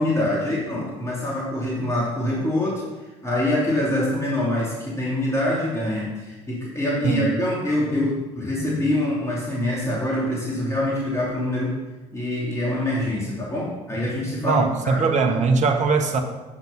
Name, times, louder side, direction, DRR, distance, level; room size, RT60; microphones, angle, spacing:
voice 1, 0.0-2.8 3.2-11.8 12.1-15.4, left 1 dB, 15° left, -5 dB, 3.0 m, -25 dB
voice 2, 14.4-16.2, right 4 dB, 45° right, 5 dB, 1.3 m, -21 dB
8.6 x 6.0 x 5.5 m, 1.2 s
hypercardioid pair, 55°, 17 cm